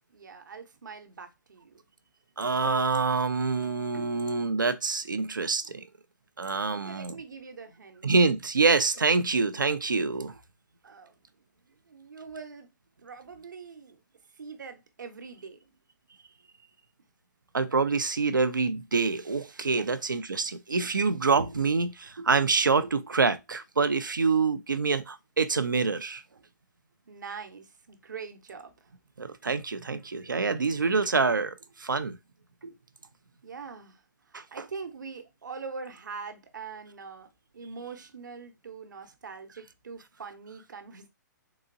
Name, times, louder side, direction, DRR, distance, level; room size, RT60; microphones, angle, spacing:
voice 1, 0.1-1.8 6.7-8.1 10.8-11.2 11.9-12.7 13.0-14.0 14.4-15.7 19.6-19.8 27.1-28.9 33.4-34.0 34.3-41.1, right 5 dB, 70° right, 0.8 m, -43 dB
voice 2, 2.4-5.8 6.4-7.1 8.0-10.4 17.5-26.2 29.2-32.2 32.6-32.7 34.3-34.4, right 4 dB, 90° right, 0.5 m, -26 dB
3.8 x 2.8 x 2.5 m
figure-of-eight pair, 120°, 10 cm